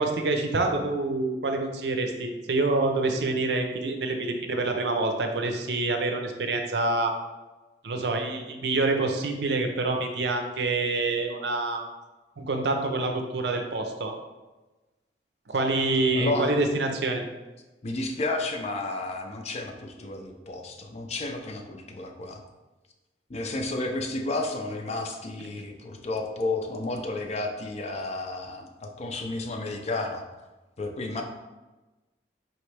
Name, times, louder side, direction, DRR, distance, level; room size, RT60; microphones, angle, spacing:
voice 1, 0.0-7.1 7.8-11.8 12.4-14.1 15.5-17.2, right 2 dB, 70° right, 4 dB, 0.6 m, -26 dB
voice 2, 16.1-16.5 17.8-22.4 23.3-30.2 30.8-31.2, left 2 dB, 40° left, 3 dB, 0.5 m, -32 dB
4.4 x 3.1 x 3.3 m, 1.1 s
head